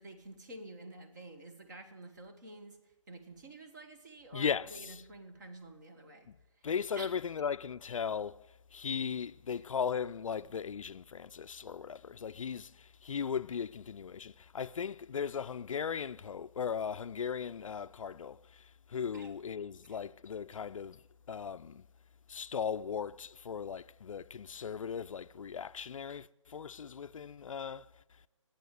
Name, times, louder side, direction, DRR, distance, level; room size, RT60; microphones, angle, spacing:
voice 1, 0.0-2.8 3.1-6.3 6.6-6.7 7.0-7.1 9.5-9.6 19.1-19.3 19.8-20.0 20.5-20.6, right 2 dB, 35° right, 1.4 m, -50 dB
voice 2, 4.3-5.0 6.6-8.4 8.7-21.0 21.3-21.8 22.3-27.9, left 7 dB, 75° left, 0.4 m, -37 dB
11.0 x 8.8 x 9.3 m
hypercardioid pair, 165°, 17 cm